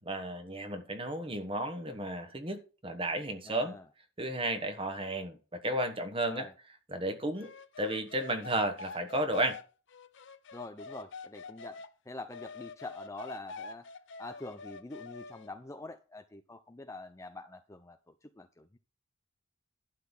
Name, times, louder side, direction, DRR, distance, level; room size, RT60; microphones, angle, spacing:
voice 1, 0.0-3.8 4.2-6.5 6.9-9.6, right 1 dB, 25° right, 1.3 m, -33 dB
voice 2, 3.5-3.8 6.3-6.5 10.5-11.8 12.1-13.8 14.2-18.0 18.4-18.8, left 2 dB, 15° left, 0.4 m, -45 dB
sound 1, 7.4-11.9 12.3-15.5, left 4 dB, 55° left, 0.6 m, -46 dB
11.5 x 4.0 x 7.3 m
head